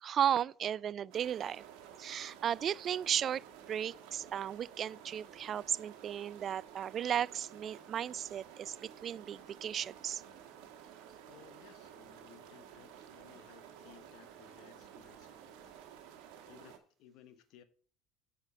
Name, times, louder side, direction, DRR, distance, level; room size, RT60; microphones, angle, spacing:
voice 1, 0.0-1.6 2.0-10.2, right 9 dB, 45° right, 0.3 m, -35 dB
sound 1, 1.1-16.8, right 9 dB, 70° right, 1.2 m, -53 dB
voice 2, 11.3-17.6, left 10 dB, 65° left, 1.0 m, -60 dB
8.1 x 5.0 x 5.6 m
hypercardioid pair, 75°, 0 cm